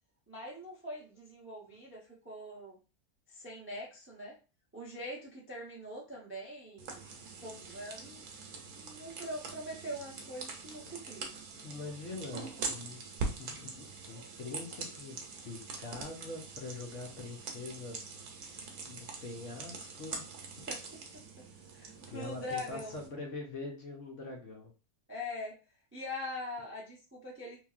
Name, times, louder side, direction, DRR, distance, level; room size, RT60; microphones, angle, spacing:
voice 1, 0.3-2.8 3.3-4.4 4.7-7.0 7.4-8.2 8.7-11.3 20.7-20.8 21.7-22.9 25.1-25.6 25.9-27.6, left 1 dB, 15° right, -4 dB, 0.4 m, -43 dB
sound 1, 6.8-23.1, right 4 dB, 70° right, 1.1 m, -43 dB
voice 2, 11.6-13.0 13.4-18.0 18.8-20.2 22.1-24.7, left 3 dB, 60° left, 1 dB, 0.9 m, -43 dB
3.1 x 2.6 x 2.3 m, 0.33 s
omnidirectional pair, 1.6 m